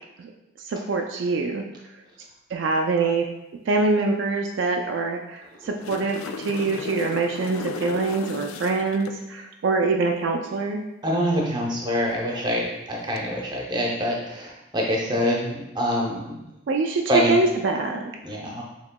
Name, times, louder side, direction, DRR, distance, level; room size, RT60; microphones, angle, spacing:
voice 1, 0.6-1.6 2.5-3.3 3.7-10.8 16.7-17.0 17.3-18.0, right 3 dB, 65° right, 2 dB, 0.3 m, -24 dB
sound 1, 5.5-9.2 13.0-13.2, left 5 dB, 90° left, 0.3 m, -35 dB
voice 2, 11.0-16.4 17.1-17.3 18.2-18.6, equal, 20° right, -2 dB, 0.7 m, -25 dB
6.9 x 2.9 x 2.2 m, 0.94 s
head